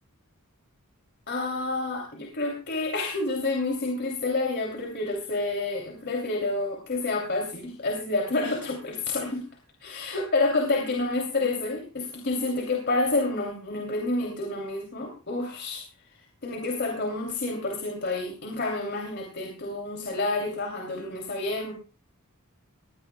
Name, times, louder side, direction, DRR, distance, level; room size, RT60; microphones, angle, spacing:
voice 1, 1.3-9.4 9.8-15.9 16.4-21.7, left 2 dB, 50° left, 2 dB, 3.0 m, -29 dB
21.0 x 17.0 x 2.3 m, 0.32 s
head